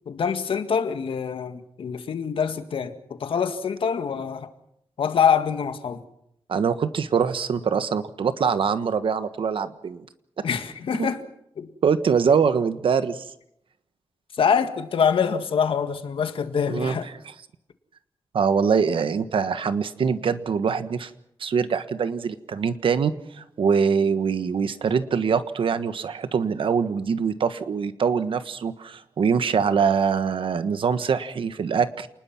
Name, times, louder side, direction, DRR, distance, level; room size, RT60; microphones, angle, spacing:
voice 1, 0.0-4.5 5.0-6.0 10.4-11.2 11.6-11.7 14.4-17.1, left 7 dB, 90° left, 9 dB, 1.8 m, -25 dB
voice 2, 6.5-10.0 10.4-10.5 11.0-11.1 11.8-13.2 16.7-17.0 18.3-21.1 21.4-32.1, right 6 dB, 80° right, 11 dB, 1.4 m, -23 dB
29.0 x 20.0 x 6.0 m, 0.76 s
wide cardioid pair, 135°, 9 cm